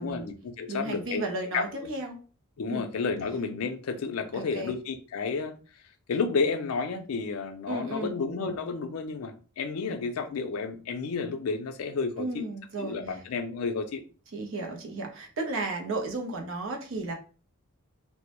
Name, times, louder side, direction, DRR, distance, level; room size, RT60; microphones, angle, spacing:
voice 1, 0.0-1.2 1.5-1.9 2.6-5.6 6.1-12.4 12.8-14.0, left 4 dB, 80° left, 0.4 m, -31 dB
voice 2, 0.7-2.2 2.7-2.8 4.3-4.8 7.7-8.1 12.2-13.0 14.3-17.1, right 2 dB, 65° right, 0.6 m, -34 dB
2.1 x 2.0 x 2.8 m
head